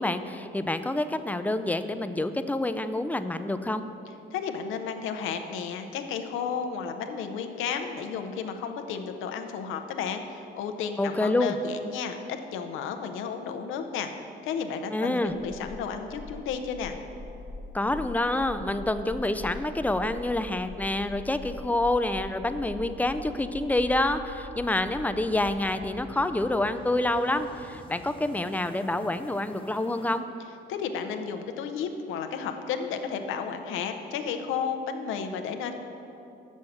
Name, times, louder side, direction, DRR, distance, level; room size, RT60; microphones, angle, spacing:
voice 1, 0.0-3.9 11.0-11.6 14.9-15.3 17.7-30.2, left 1 dB, 10° left, 10 dB, 0.4 m, -27 dB
voice 2, 4.3-12.2 12.5-14.1 14.4-17.0 30.7-35.7, left 6 dB, 90° left, 6 dB, 0.7 m, -33 dB
sound 1, 15.2-30.2, left 2 dB, 25° left, 0.8 m, -44 dB
6.4 x 6.3 x 7.0 m, 2.8 s
cardioid pair, 90°, 20 cm